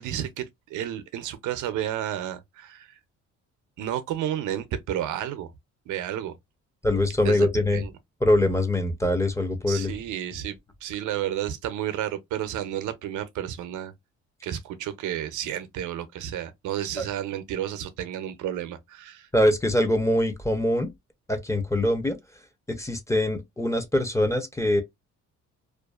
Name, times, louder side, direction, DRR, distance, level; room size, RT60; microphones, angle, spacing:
voice 1, 0.0-2.9 3.8-5.5 5.9-6.3 7.2-7.5 7.7-7.9 9.7-13.9 14.4-19.3, right 11 dB, 80° right, 0.5 m, -31 dB
voice 2, 6.8-7.8 8.2-9.9 17.0-17.1 19.3-20.9 21.3-22.2 22.7-24.8, left 1 dB, 10° left, 0.5 m, -23 dB
2.4 x 2.2 x 2.3 m
cardioid pair, 90°, 30 cm